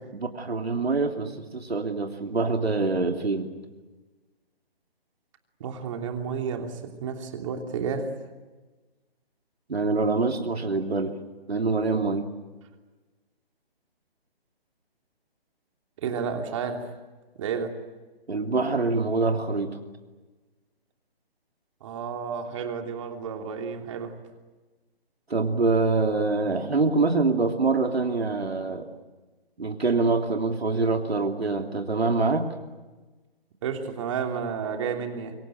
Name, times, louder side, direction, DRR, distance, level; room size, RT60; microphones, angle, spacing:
voice 1, 0.1-3.5 9.7-11.2 11.5-12.3 18.3-19.8 25.3-28.9 29.6-32.5, right 3 dB, 90° right, 4 dB, 2.9 m, -25 dB
voice 2, 5.6-8.1 16.0-16.9 17.4-17.7 21.8-24.1 33.6-35.3, right 6 dB, 30° right, 4 dB, 3.2 m, -31 dB
25.0 x 23.5 x 9.2 m, 1.2 s
hypercardioid pair, 155°, 30 cm